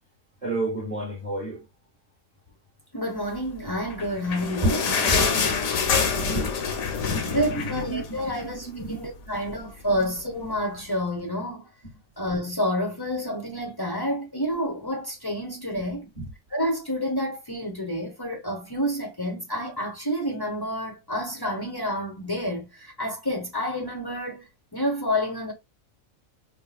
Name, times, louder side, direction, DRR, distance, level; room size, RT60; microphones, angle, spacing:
voice 1, 0.4-1.7 4.6-9.0 9.3-9.4 9.9-10.1 11.8-11.9 15.7-15.9 16.1-16.3, right 1 dB, 35° right, 1.3 m, -31 dB
voice 2, 2.9-4.8 7.3-11.7 12.2-16.1 16.5-24.4 24.7-25.5, equal, 20° left, 0.7 m, -29 dB
sound 1, 3.9-8.6 9.0-9.1 9.3-9.5 10.2-10.3, left 5 dB, 75° left, 1.2 m, -26 dB
5.4 x 2.1 x 2.3 m
omnidirectional pair, 1.5 m